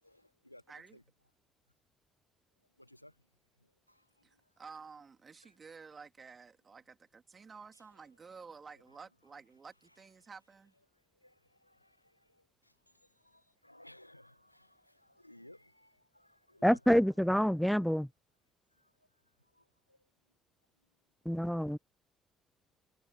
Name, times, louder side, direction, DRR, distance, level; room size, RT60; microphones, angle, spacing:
voice 1, 0.0-1.0 2.8-3.3 3.6-4.5 5.4-5.6 7.7-7.8 8.9-9.0 9.8-10.3 10.9-17.1 18.7-20.1, left 1 dB, 90° left, 1.3 m, -60 dB
voice 2, 0.7-1.0 4.2-10.7, right 5 dB, 35° right, 3.1 m, -52 dB
voice 3, 16.6-18.1 21.3-21.8, equal, ahead, 0.4 m, -27 dB
figure-of-eight pair, 45°, 0 cm